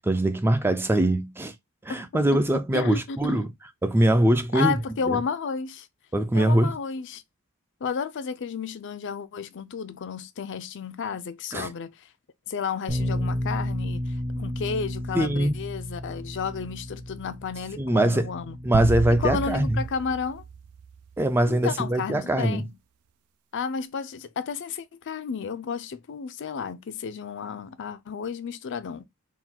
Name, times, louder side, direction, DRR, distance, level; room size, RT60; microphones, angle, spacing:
voice 1, 0.0-1.5 1.8-3.5 3.8-4.7 5.1-5.2 6.1-6.7 11.5-11.7 15.1-15.6 17.8-18.3 18.6-19.8 21.2-22.6, right 1 dB, 10° right, 0.3 m, -22 dB
voice 2, 2.7-3.5 4.5-5.9 6.3-7.2 7.8-12.1 12.5-18.6 19.2-20.4 21.5-22.7 23.5-29.1, left 6 dB, 55° left, 0.4 m, -32 dB
Bass guitar, 12.9-19.1, equal, 30° right, 0.7 m, -32 dB
sound 1, 18.7-21.2, right 6 dB, 80° right, 0.4 m, -31 dB
3.7 x 2.2 x 4.3 m
head